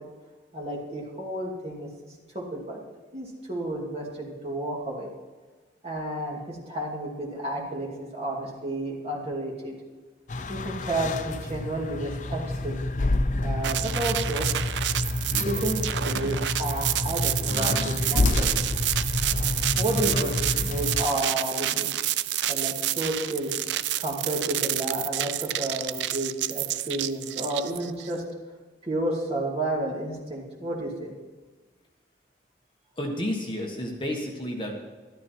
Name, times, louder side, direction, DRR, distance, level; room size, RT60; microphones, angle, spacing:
voice 1, 0.5-2.8 3.1-5.1 5.8-9.7 10.5-12.8 13.4-14.5 15.4-18.5 19.8-20.4 20.6-22.0 22.4-23.5 24.0-28.2 28.8-31.1, right 1 dB, 35° right, -2 dB, 2.6 m, -31 dB
sound 1, 10.3-21.0, left 2 dB, 45° left, 0.5 m, -28 dB
sound 2, 13.6-28.1, right 13 dB, 80° right, 0.4 m, -29 dB
voice 2, 33.0-34.8, equal, 25° left, 0 dB, 1.5 m, -31 dB
13.0 x 12.0 x 4.5 m, 1.4 s
head